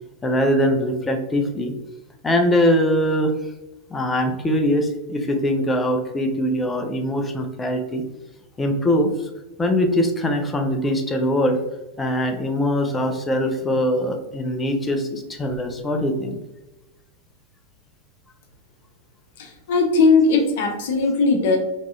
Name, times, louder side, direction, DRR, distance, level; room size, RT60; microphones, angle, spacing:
voice 1, 0.2-1.7 2.2-3.3 3.9-8.0 8.6-9.3 9.6-11.6 12.0-16.4, equal, 15° left, 4 dB, 0.5 m, -22 dB
voice 2, 19.4-21.6, left 4 dB, 55° left, 2 dB, 0.7 m, -18 dB
3.6 x 3.0 x 2.4 m, 1.0 s
figure-of-eight pair, 90°, 0 cm